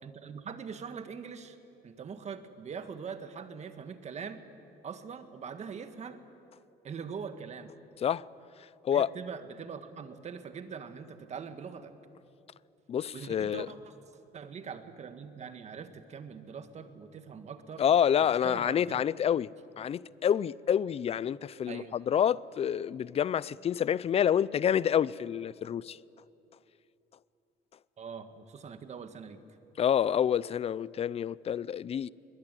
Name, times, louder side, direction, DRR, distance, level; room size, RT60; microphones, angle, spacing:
voice 1, 0.0-1.6 1.8-4.4 4.8-6.2 6.8-7.7 8.9-11.9 13.1-13.9 14.3-17.8 18.2-19.0 21.7-22.0 28.0-29.4, right 6 dB, 40° right, 1.8 m, -42 dB
voice 2, 12.9-13.7 17.8-19.5 19.8-26.0 29.8-32.1, left 9 dB, 35° left, 0.5 m, -28 dB
22.0 x 21.0 x 9.2 m
cardioid pair, 110°, 17 cm